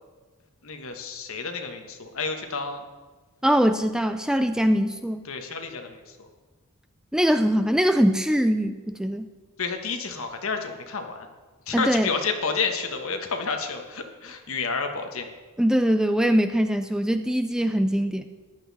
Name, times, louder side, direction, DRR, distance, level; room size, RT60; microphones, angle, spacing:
voice 1, 0.6-2.8 5.2-6.3 9.6-11.3 11.7-15.3, left 5 dB, 65° left, 5 dB, 1.4 m, -30 dB
voice 2, 3.4-5.2 7.1-9.3 11.7-12.1 15.6-18.3, equal, 5° right, 8 dB, 0.3 m, -22 dB
14.0 x 10.5 x 4.2 m, 1.3 s
head